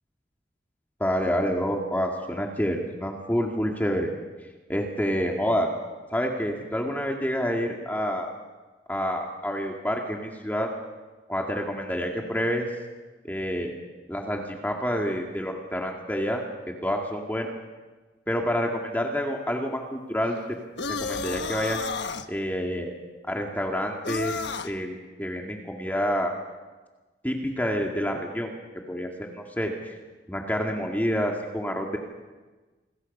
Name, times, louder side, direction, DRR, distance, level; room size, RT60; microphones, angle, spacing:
voice 1, 1.0-4.1 4.7-5.7 6.1-8.3 8.9-10.7 11.3-12.7 13.2-13.7 14.1-16.4 16.8-17.5 18.3-20.4 21.0-21.8 22.3-22.9 23.3-24.3 24.6-26.3 27.2-28.5 28.9-29.7 30.3-32.0, equal, 10° left, 1 dB, 2.1 m, -28 dB
sound 1, 20.8-22.3 24.0-24.7, left 4 dB, 90° left, 1.2 m, -31 dB
28.5 x 21.0 x 5.5 m, 1.3 s
head